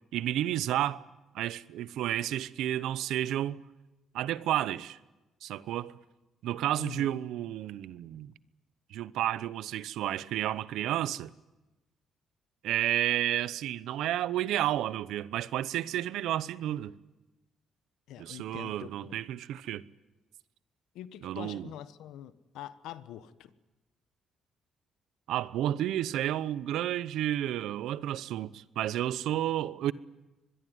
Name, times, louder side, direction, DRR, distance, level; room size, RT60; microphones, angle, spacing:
voice 1, 0.1-1.0 1.3-3.6 4.1-5.0 5.4-5.9 6.4-8.3 8.9-11.3 12.6-17.0 18.2-19.8 21.2-21.7 25.3-29.9, right 12 dB, 85° right, 0.8 m, -31 dB
voice 2, 18.1-19.2 20.9-23.5, left 11 dB, 90° left, 1.2 m, -44 dB
24.5 x 21.5 x 9.4 m
cardioid pair, 90°, 0 cm